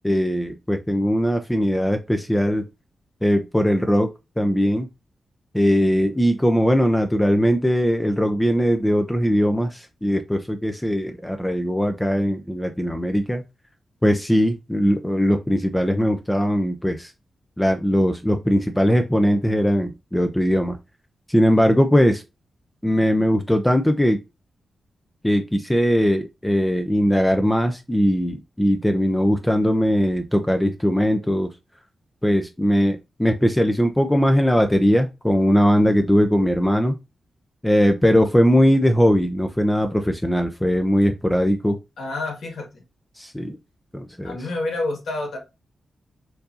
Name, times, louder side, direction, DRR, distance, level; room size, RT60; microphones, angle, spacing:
voice 1, 0.0-2.6 3.2-4.1 4.4-4.9 5.5-13.4 14.0-17.1 17.6-20.8 21.3-22.2 22.8-24.2 25.2-31.5 32.2-37.0 37.6-41.8 43.2-43.6 43.9-44.4, equal, 10° left, 0.5 m, -20 dB
voice 2, 42.0-42.8 44.2-45.4, left 2 dB, 80° left, 1.8 m, -28 dB
4.6 x 2.7 x 2.6 m
cardioid pair, 70°, 0 cm